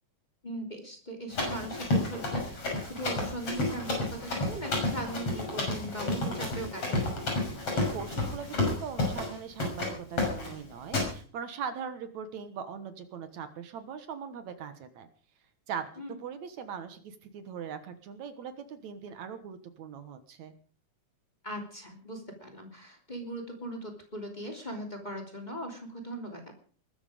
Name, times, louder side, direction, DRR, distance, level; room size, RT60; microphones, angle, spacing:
voice 1, 0.4-7.3 16.0-16.2 21.4-26.5, right 1 dB, 15° left, 4 dB, 3.1 m, -39 dB
Run, 1.3-9.3 9.6-9.9 10.2-10.5 10.9-11.1, left 2 dB, 50° left, 7.1 m, -31 dB
voice 2, 7.4-15.1 15.7-15.9 16.2-20.5, right 7 dB, 70° right, 10 dB, 2.6 m, -40 dB
21.0 x 13.0 x 5.1 m, 0.41 s
omnidirectional pair, 3.5 m